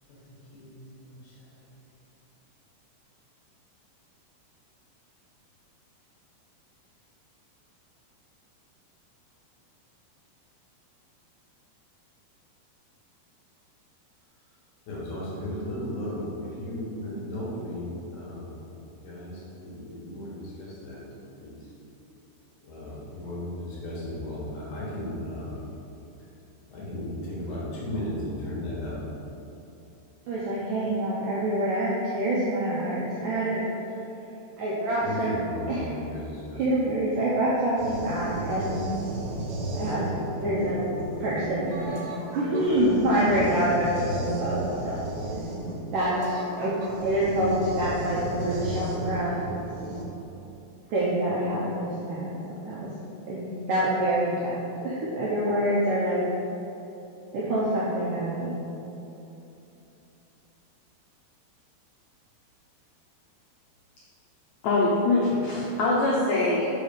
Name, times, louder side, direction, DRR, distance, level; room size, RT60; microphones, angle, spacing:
voice 1, 0.5-1.3 14.9-18.5 19.0-21.0 21.4-21.6 22.6-25.6 26.7-29.0 35.0-36.6, left 1 dB, 65° left, -6 dB, 2.2 m, -35 dB
voice 2, 30.3-33.7 34.6-35.3 35.7-35.9 36.5-38.8 39.7-40.1 40.4-40.8 41.2-42.0 42.3-45.0 45.9-49.4 50.9-52.9 53.3-56.2 57.3-58.6, right 1 dB, 90° right, -7 dB, 1.8 m, -26 dB
sound 1, 37.8-50.0, right 1 dB, 70° right, 2.7 m, -34 dB
voice 3, 64.6-66.7, left 2 dB, 85° left, -5 dB, 1.8 m, -23 dB
6.2 x 5.5 x 5.1 m, 2.9 s
omnidirectional pair, 5.0 m